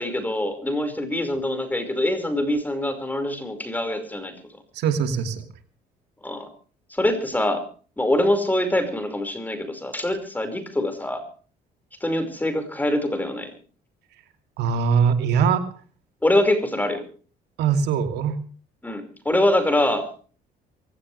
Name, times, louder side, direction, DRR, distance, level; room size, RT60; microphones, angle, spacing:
voice 1, 0.0-4.3 6.2-6.5 6.9-7.6 8.0-11.2 12.0-13.5 16.2-17.0 18.8-20.1, left 1 dB, 10° left, 8 dB, 5.1 m, -24 dB
voice 2, 4.7-5.4 14.6-15.6 17.6-18.3, right 6 dB, 80° right, 7 dB, 2.7 m, -21 dB
23.5 x 17.0 x 3.3 m, 0.40 s
cardioid pair, 110°, 17 cm